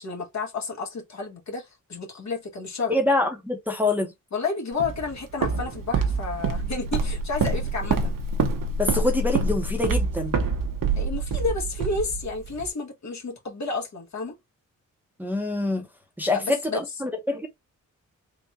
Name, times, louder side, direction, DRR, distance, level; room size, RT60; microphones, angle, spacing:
voice 1, 0.0-2.9 4.3-8.1 11.0-14.4 16.3-16.8, left 4 dB, 55° left, 1.5 m, -31 dB
voice 2, 2.9-4.1 8.8-10.4 15.2-15.9 16.2-17.5, left 2 dB, 5° right, 0.9 m, -25 dB
Walk footsteps, 4.8-12.7, right 4 dB, 90° right, 0.8 m, -26 dB
3.7 x 2.4 x 4.1 m
wide cardioid pair, 130°, 32 cm